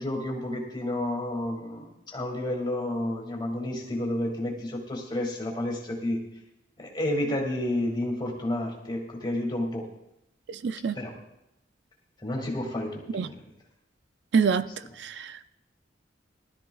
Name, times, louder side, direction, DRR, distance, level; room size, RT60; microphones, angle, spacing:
voice 1, 0.0-6.2 6.8-9.9 10.9-11.1 12.2-13.4, left 1 dB, 25° left, 0 dB, 2.2 m, -30 dB
voice 2, 10.5-11.0 13.1-13.3 14.3-14.7 15.0-15.5, right 6 dB, 70° right, 13 dB, 0.4 m, -26 dB
19.5 x 12.5 x 2.3 m, 0.85 s
head